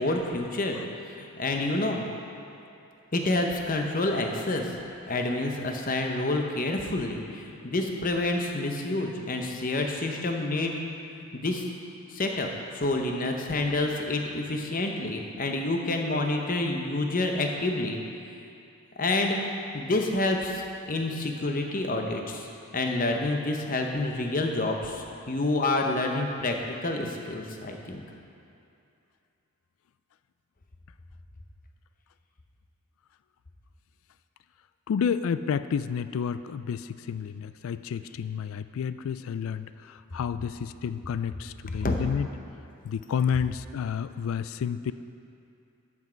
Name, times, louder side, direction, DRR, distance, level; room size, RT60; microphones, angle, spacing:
voice 1, 0.0-2.0 3.1-4.7 5.1-10.7 11.3-11.6 12.1-12.5 12.7-18.0 19.0-19.4 19.7-22.5 22.7-26.6 26.8-28.0 41.8-42.0, left 2 dB, 35° left, 2 dB, 0.8 m, -28 dB
voice 2, 34.9-42.3 42.8-44.9, left 7 dB, 65° left, 13 dB, 0.3 m, -30 dB
12.5 x 6.1 x 4.5 m, 2.6 s
head